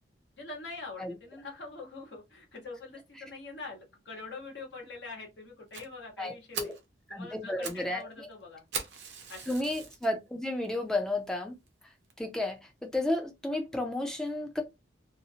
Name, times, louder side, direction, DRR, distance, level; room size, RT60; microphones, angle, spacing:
voice 1, 0.4-6.7 7.1-8.6 9.3-9.6, left 3 dB, 70° left, 1.1 m, -44 dB
Fire, 5.7-5.9 6.3-6.4 6.5-6.8 7.4-7.9 8.1-8.2 8.7-10.1 10.6-10.7 11.3-11.4 11.7-11.8 12.1-12.2, right 5 dB, 65° right, 0.6 m, -39 dB
voice 2, 6.2-6.7 7.1-8.3 9.5-11.6 12.2-14.6, left 1 dB, 5° left, 0.4 m, -32 dB
2.7 x 2.0 x 2.7 m
head